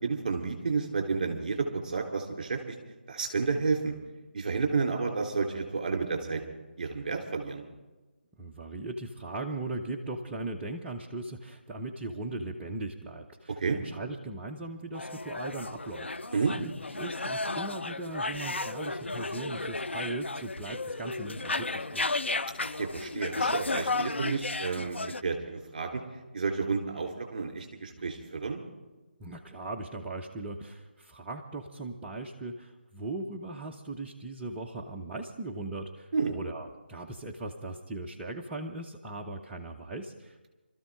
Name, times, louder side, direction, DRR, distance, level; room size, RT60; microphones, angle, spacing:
voice 1, 0.0-2.6 3.1-3.9 4.3-6.4 6.8-7.6 13.6-13.8 16.3-16.5 22.5-26.0 26.3-28.6 36.1-36.3, right 4 dB, 40° right, 1 dB, 3.5 m, -31 dB
voice 2, 8.4-22.1 29.2-40.5, right 2 dB, 10° right, -2 dB, 0.7 m, -39 dB
sound 1, 14.9-25.2, left 3 dB, 80° left, 0.5 m, -34 dB
25.0 x 13.5 x 3.7 m, 1.2 s
figure-of-eight pair, 155°, 6 cm